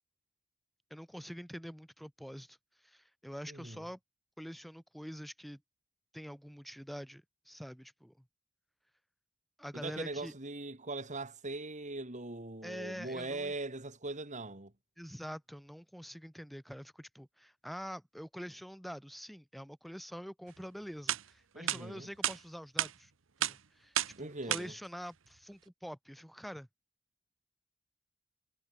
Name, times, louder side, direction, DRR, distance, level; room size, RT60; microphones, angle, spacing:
voice 1, 0.9-2.6 2.8-4.0 4.4-5.6 6.1-8.3 9.6-10.3 12.6-13.5 15.0-23.1 23.4-26.7, equal, ahead, 6.1 m, -46 dB
voice 2, 3.5-3.8 9.7-14.7 21.5-22.1 24.2-24.7, right 2 dB, 40° right, 3.0 m, -41 dB
sound 1, 20.6-20.7 21.1-21.2 21.7-21.8 22.2-22.4 22.8-22.9 23.4-23.6 24.0-24.2 24.5-24.6, right 11 dB, 70° right, 1.0 m, -31 dB
head